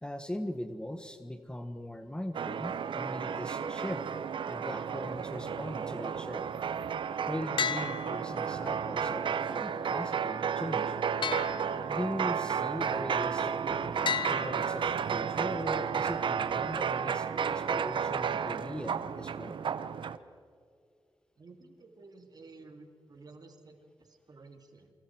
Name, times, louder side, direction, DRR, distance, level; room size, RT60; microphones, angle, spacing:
voice 1, 0.0-4.1 4.5-6.4 7.2-11.0 11.9-19.6, left 1 dB, 10° left, 8 dB, 1.4 m, -40 dB
sound 1, 2.3-20.2, right 7 dB, 75° right, 0.8 m, -32 dB
sound 2, 7.6-8.8 11.2-12.3 14.1-15.3, left 6 dB, 70° left, 0.8 m, -35 dB
voice 2, 21.4-24.9, right 3 dB, 50° right, 5 dB, 2.7 m, -53 dB
28.0 x 25.0 x 4.7 m, 2.3 s
cardioid pair, 85°, 9 cm